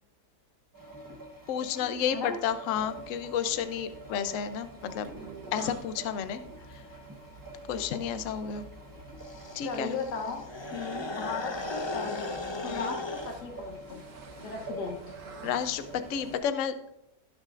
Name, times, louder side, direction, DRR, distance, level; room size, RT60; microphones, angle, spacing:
sound 1, 0.7-16.3, right 1 dB, 15° right, 1.0 m, -47 dB
voice 1, 1.5-5.1 5.5-6.4 6.7-6.8 7.7-8.6 9.6-10.0 10.7-11.0 12.6-12.9 15.4-17.0, left 8 dB, 60° left, 10 dB, 0.9 m, -31 dB
sound 2, 2.7-16.4, right 3 dB, 65° right, 1.4 m, -50 dB
sound 3, 9.2-13.3, left 2 dB, 30° left, 0.5 m, -37 dB
voice 2, 9.6-10.4 11.1-12.4 12.6-14.0 14.4-15.0, left 5 dB, 85° left, 4 dB, 1.7 m, -36 dB
17.5 x 6.5 x 2.5 m, 0.83 s
omnidirectional pair, 1.7 m